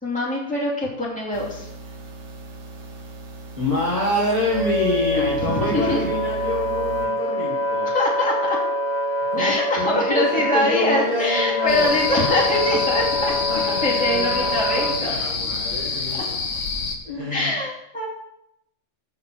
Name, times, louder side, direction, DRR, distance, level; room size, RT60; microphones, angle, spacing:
voice 1, 0.0-1.7 5.1-6.0 7.9-8.6 9.4-15.1 17.3-18.1, left 1 dB, 5° left, -6 dB, 2.8 m, -24 dB
sound 1, 1.3-7.1, right 1 dB, 65° right, 1.5 m, -37 dB
voice 2, 3.6-7.9 9.3-12.3 12.6-12.8 13.5-16.3 17.1-17.5, left 2 dB, 30° left, -6 dB, 2.0 m, -27 dB
Wind instrument woodwind instrument, 4.1-15.0, left 1 dB, 20° right, 1.3 m, -25 dB
sound 2, 11.7-17.0, left 4 dB, 80° left, 1.4 m, -27 dB
6.5 x 6.5 x 7.5 m, 0.81 s
omnidirectional pair, 1.3 m